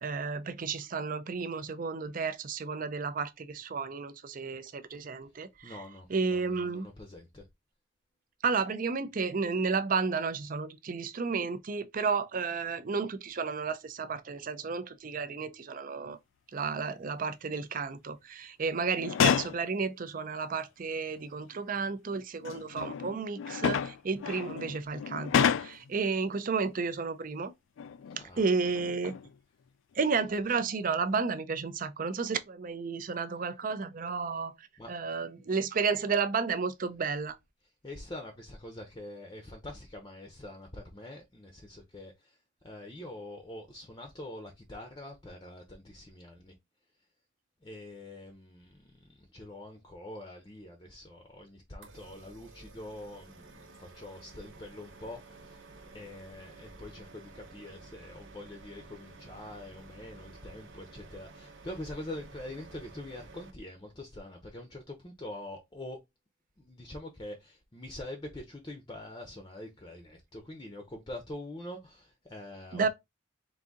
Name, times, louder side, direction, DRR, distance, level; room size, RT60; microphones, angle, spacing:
voice 1, 0.0-5.8 6.1-6.9 8.4-16.2 16.5-27.5 28.4-29.1 30.0-34.5 34.9-37.4 72.7-72.9, right 5 dB, 45° right, 0.5 m, -32 dB
voice 2, 5.6-7.4 28.1-28.6 34.8-34.9 37.8-42.4 42.6-46.5 47.6-55.6 55.9-66.0 66.6-72.9, left 1 dB, 20° left, 0.6 m, -45 dB
sound 1, 18.9-19.6 20.8-20.9 22.1-25.9 27.8-28.2 28.6-29.4 29.9-30.1, left 7 dB, 75° left, 0.3 m, -30 dB
sound 2, 51.8-63.5, right 3 dB, 80° right, 0.9 m, -52 dB
4.0 x 2.6 x 3.6 m
head